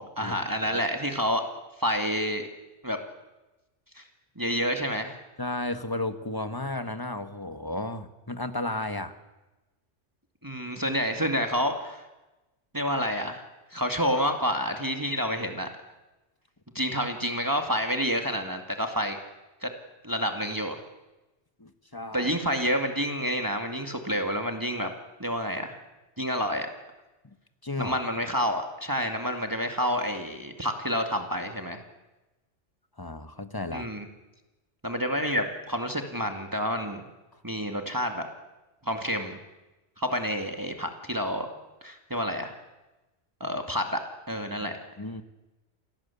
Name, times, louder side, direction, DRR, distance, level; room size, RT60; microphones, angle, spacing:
voice 1, 0.0-1.4 1.8-2.4 2.8-3.0 4.0-4.1 4.4-5.2 10.4-12.0 12.7-13.4 13.7-15.7 16.7-19.2 19.6-19.7 20.0-20.8 22.1-24.9 25.2-25.8 26.2-26.7 27.8-31.8 33.7-34.1 34.8-37.1 37.4-38.3 38.8-39.4 40.0-41.5 41.8-42.5 43.4-44.0 44.3-44.8, equal, 15° right, 5 dB, 2.1 m, -29 dB
voice 2, 5.4-9.1 21.6-22.3 27.2-27.4 27.6-28.0 33.0-33.9 45.0-45.2, left 2 dB, 20° left, 9 dB, 1.4 m, -33 dB
28.0 x 18.0 x 8.4 m, 1.1 s
omnidirectional pair, 1.2 m